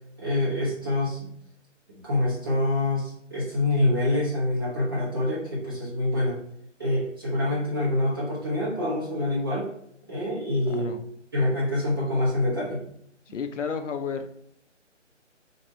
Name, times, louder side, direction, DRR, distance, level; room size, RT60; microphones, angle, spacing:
voice 1, 0.2-1.3 1.9-6.4 6.8-9.7 10.1-10.9 11.3-12.8, left 1 dB, 20° right, -9 dB, 0.8 m, -26 dB
voice 2, 10.7-11.0 13.3-14.5, left 6 dB, 75° left, 9 dB, 0.5 m, -32 dB
2.8 x 2.5 x 4.2 m, 0.71 s
figure-of-eight pair, 165°, 37 cm